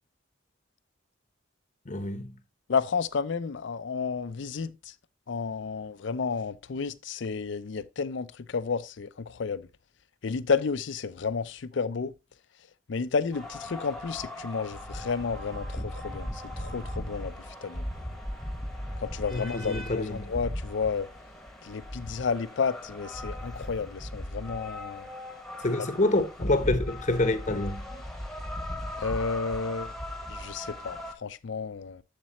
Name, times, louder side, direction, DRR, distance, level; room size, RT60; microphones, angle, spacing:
voice 1, 1.9-2.3 19.3-20.3 25.6-28.0, left 2 dB, 35° left, 0.8 m, -27 dB
voice 2, 2.7-4.9 5.3-9.7 10.2-12.1 12.9-17.9 19.0-21.1 21.6-25.1 29.0-29.9 30.3-32.0, left 5 dB, 65° left, 0.5 m, -31 dB
sound 1, 13.3-31.1, left 1 dB, ahead, 1.2 m, -38 dB
7.4 x 7.3 x 2.9 m
head